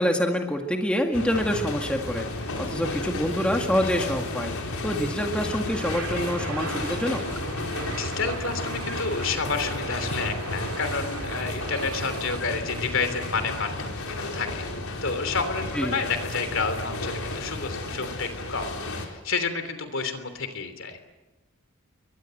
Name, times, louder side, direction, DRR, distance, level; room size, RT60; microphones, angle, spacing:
voice 1, 0.0-7.2 15.8-16.0, equal, 5° left, 2 dB, 2.0 m, -26 dB
sound 1, 1.1-19.1, left 2 dB, 80° left, 4.5 m, -32 dB
sound 2, 5.7-12.4, right 4 dB, 80° right, 2.4 m, -38 dB
voice 2, 7.9-14.7 15.0-21.0, left 4 dB, 60° left, 9 dB, 3.2 m, -30 dB
29.5 x 23.0 x 7.8 m, 1.1 s
head